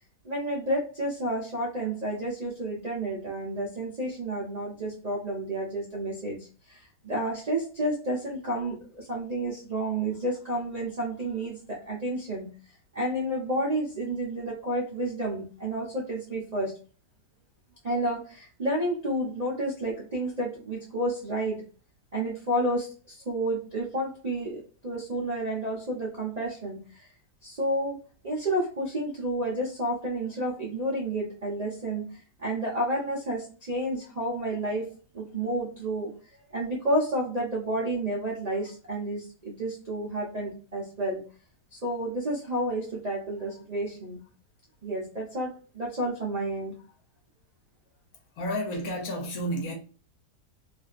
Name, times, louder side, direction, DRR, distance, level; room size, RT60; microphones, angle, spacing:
voice 1, 0.2-12.5 12.9-16.7 17.8-21.6 22.1-27.1 27.4-28.0 28.2-34.8 35.1-36.1 36.5-41.2 41.7-44.2 44.8-46.7, right 1 dB, 55° right, 0.4 m, -30 dB
voice 2, 48.3-49.7, equal, 65° left, 1.0 m, -31 dB
2.7 x 2.5 x 2.4 m
omnidirectional pair, 1.8 m